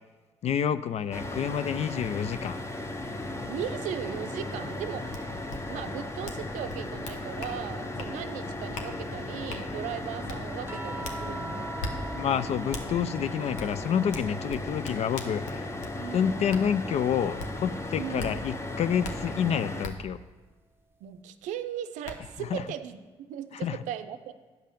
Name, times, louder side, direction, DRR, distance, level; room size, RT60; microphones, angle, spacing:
voice 1, 0.4-2.6 12.2-15.7 16.1-20.2 22.5-22.6 23.6-23.8, left 8 dB, 60° left, 13 dB, 0.4 m, -28 dB
sound 1, 1.1-19.9, left 2 dB, 20° left, 0.9 m, -36 dB
voice 2, 3.5-5.3 5.7-11.7 16.0-16.5 17.9-18.4 21.0-24.3, right 10 dB, 80° right, 10 dB, 0.5 m, -38 dB
sound 2, 5.1-5.2 5.5-5.6 6.2-6.4 6.7-7.5 8.0-8.1 8.7-8.9 9.5-9.6 10.3-10.4 11.0-11.2 11.8-11.9 12.7-12.8 13.6-13.7 14.1-15.9 16.5-16.6 17.4-17.5 18.2-18.3 19.0-19.1 19.8-19.9 21.4-21.5 22.0-22.1, left 2 dB, 80° left, 0.8 m, -38 dB
sound 3, 10.7-15.2 15.5-17.1 18.7-18.8, right 3 dB, 20° right, 0.7 m, -44 dB
9.3 x 5.5 x 5.2 m, 1.3 s
hypercardioid pair, 50°, 12 cm